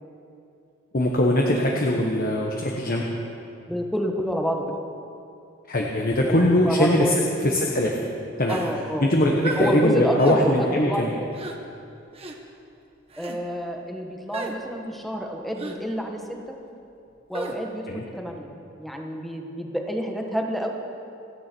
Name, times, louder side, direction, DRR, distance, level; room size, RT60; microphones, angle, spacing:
voice 1, 0.9-3.0 5.7-7.1 7.4-8.0 8.4-8.6 9.0-11.1 17.9-18.0, left 1 dB, 50° left, -1 dB, 1.3 m, -21 dB
voice 2, 3.7-4.6 6.2-7.2 8.5-11.3 13.2-16.2 17.3-18.5 18.8-20.7, equal, ahead, 2 dB, 1.4 m, -29 dB
sound 1, 8.5-8.8 9.4-9.7 10.2-10.4 11.3-11.6 12.1-12.4 13.1-13.4 14.3-14.6 15.6-15.8 17.3-17.6, right 2 dB, 30° right, 1.3 m, -33 dB
28.5 x 9.7 x 4.6 m, 2.6 s
head